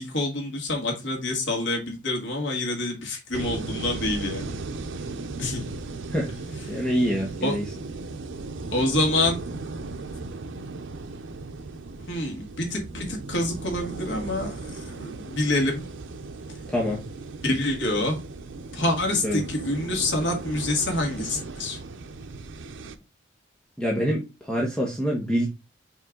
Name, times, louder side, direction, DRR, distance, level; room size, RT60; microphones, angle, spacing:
voice 1, 0.0-4.5 5.4-5.6 6.7-6.8 7.4-7.5 8.7-9.4 12.1-15.9 17.4-18.2 18.7-21.8, left 2 dB, 70° left, 1 dB, 2.1 m, -27 dB
sound 1, 3.3-23.0, right 3 dB, 80° right, 0.7 m, -37 dB
voice 2, 6.7-7.6 16.7-17.0 19.2-19.4 23.8-25.5, equal, 5° left, -2 dB, 1.2 m, -25 dB
5.5 x 4.5 x 3.8 m, 0.27 s
head